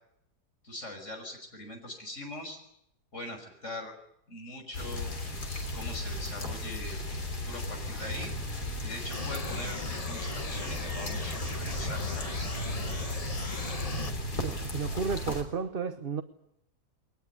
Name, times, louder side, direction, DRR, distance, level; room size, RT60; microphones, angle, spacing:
voice 1, 0.6-2.6 3.1-3.9 4.3-5.1 5.7-7.0 7.4-8.3 8.8-12.5, left 1 dB, 45° left, 6.2 m, -42 dB
sound 1, 4.7-15.4, left 1 dB, 75° left, 4.2 m, -35 dB
sound 2, 9.1-14.1, left 3 dB, 25° left, 1.2 m, -39 dB
voice 2, 14.3-16.2, right 5 dB, 40° right, 1.1 m, -33 dB
22.0 x 20.0 x 9.7 m
omnidirectional pair, 1.7 m